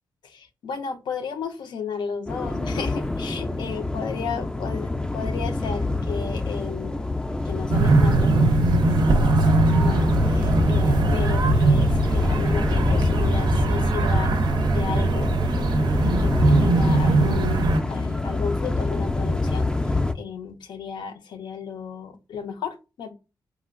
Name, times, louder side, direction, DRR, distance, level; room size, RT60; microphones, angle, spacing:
voice 1, 0.2-7.0 7.5-9.0 9.3-14.4 14.7-15.3 16.2-23.1, left 6 dB, 75° left, 7 dB, 0.4 m, -34 dB
sound 1, 2.3-20.1, left 2 dB, 10° left, 0.3 m, -26 dB
sound 2, 7.7-17.8, right 2 dB, 70° right, 0.4 m, -21 dB
2.9 x 2.4 x 2.4 m, 0.29 s
cardioid pair, 90°, 8 cm